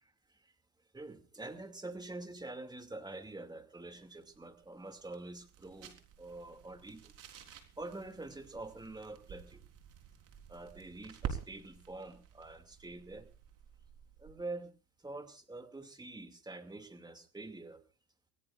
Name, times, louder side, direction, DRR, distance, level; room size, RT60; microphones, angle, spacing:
voice 1, 0.9-7.1 7.8-9.6 10.5-13.3 14.2-14.7 15.0-17.8, right 2 dB, 10° right, 6 dB, 2.4 m, -46 dB
sound 1, 3.9-14.5, right 8 dB, 40° right, 3.9 m, -49 dB
25.0 x 17.5 x 2.5 m, 0.35 s
hypercardioid pair, 95°, 49 cm